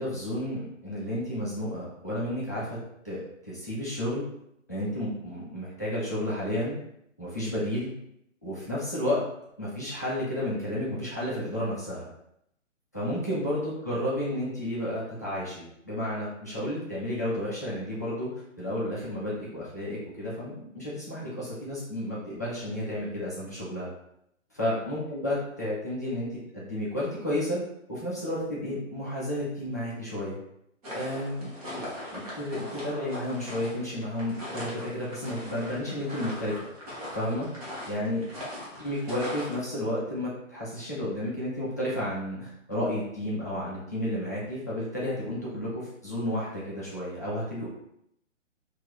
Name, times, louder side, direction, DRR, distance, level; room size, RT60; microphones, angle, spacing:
voice 1, 0.0-2.7 3.0-4.2 4.7-6.8 7.2-7.9 8.4-9.2 9.6-12.1 12.9-23.9 24.5-27.6 27.9-30.4 30.9-31.5 31.7-31.8 32.1-36.6 37.1-37.5 37.9-38.2 38.8-47.7, left 1 dB, 15° left, -9 dB, 0.4 m, -32 dB
sound 1, 30.8-39.5, equal, 30° right, 1.1 m, -40 dB
3.0 x 2.7 x 4.0 m, 0.77 s
figure-of-eight pair, 130°, 39 cm